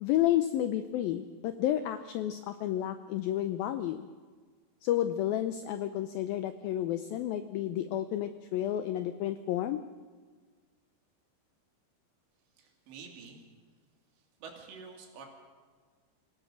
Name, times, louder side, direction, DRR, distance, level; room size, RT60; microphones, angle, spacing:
voice 1, 0.0-4.1 4.8-9.8, left 12 dB, 85° left, 10 dB, 2.1 m, -31 dB
voice 2, 12.6-13.4 14.4-15.3, right 5 dB, 85° right, 1 dB, 5.1 m, -48 dB
25.5 x 17.0 x 6.3 m, 1.5 s
omnidirectional pair, 5.0 m